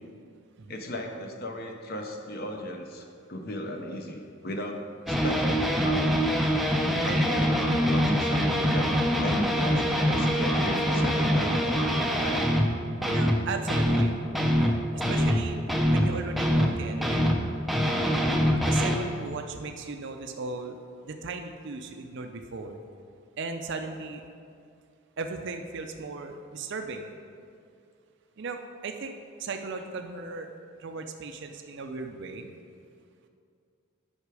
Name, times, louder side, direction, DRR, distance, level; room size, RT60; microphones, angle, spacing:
voice 1, 0.7-6.1 7.0-11.6, left 1 dB, 45° left, 3 dB, 0.7 m, -36 dB
sound 1, 5.1-12.7 13.0-13.4 13.7-16.8 17.0-19.0, equal, ahead, 0.4 m, -24 dB
voice 2, 13.0-14.1 14.9-15.6 15.9-17.3 18.6-20.8 21.0-22.8 23.4-24.2 25.2-27.1 28.4-30.5 30.8-32.5, right 4 dB, 55° right, 5 dB, 0.5 m, -37 dB
8.2 x 5.7 x 4.8 m, 2.3 s
head